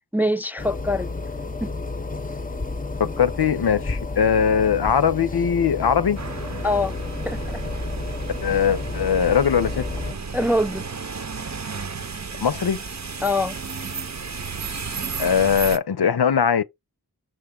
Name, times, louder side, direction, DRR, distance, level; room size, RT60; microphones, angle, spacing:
voice 1, 0.1-1.1 1.6-1.7 6.6-7.0 7.3-7.6 10.3-10.9 13.2-13.6, left 1 dB, 5° right, 0.4 m, -23 dB
sound 1, 0.6-10.1, left 3 dB, 20° left, 0.7 m, -31 dB
voice 2, 3.0-6.2 8.4-9.9 12.4-12.8 15.2-16.6, left 7 dB, 75° left, 0.7 m, -20 dB
sound 2, 6.2-15.8, right 5 dB, 45° right, 0.8 m, -33 dB
6.6 x 4.4 x 3.7 m
wide cardioid pair, 45°, 39 cm